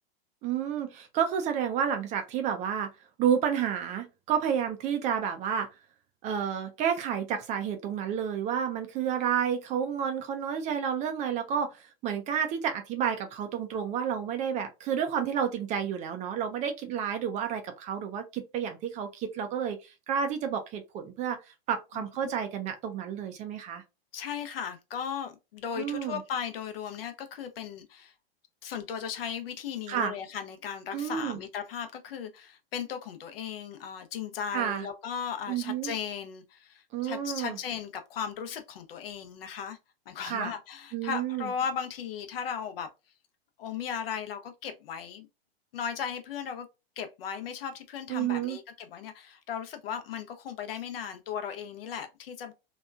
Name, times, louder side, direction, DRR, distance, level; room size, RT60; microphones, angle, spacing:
voice 1, 0.4-2.9 3.2-5.7 6.2-23.8 25.8-26.2 29.9-30.1 30.9-31.4 34.5-34.9 35.5-35.9 36.9-37.6 40.3-40.5 40.9-41.5 48.1-48.6, right 8 dB, 25° right, 0.4 m, -30 dB
voice 2, 24.1-28.1 28.6-39.8 40.1-42.9 43.6-45.3 45.7-46.7 47.0-52.5, left 7 dB, 65° left, 0.7 m, -36 dB
2.9 x 2.3 x 2.2 m
hypercardioid pair, 105°, 31 cm